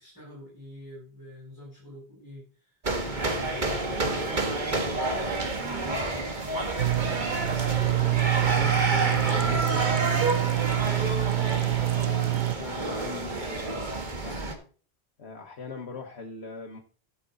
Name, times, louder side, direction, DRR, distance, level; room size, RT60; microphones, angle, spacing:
voice 1, 0.0-2.8 3.1-6.4, left 1 dB, 20° left, -8 dB, 6.4 m, -46 dB
sound 1, 2.8-14.5, right 2 dB, 50° right, 1.6 m, -29 dB
sound 2, 6.8-12.6, right 16 dB, 90° right, 0.9 m, -26 dB
voice 2, 8.2-10.4 10.7-11.1 11.7-14.5 15.2-16.8, left 5 dB, 90° left, 0 dB, 1.5 m, -40 dB
12.5 x 6.8 x 3.8 m, 0.39 s
omnidirectional pair, 1.1 m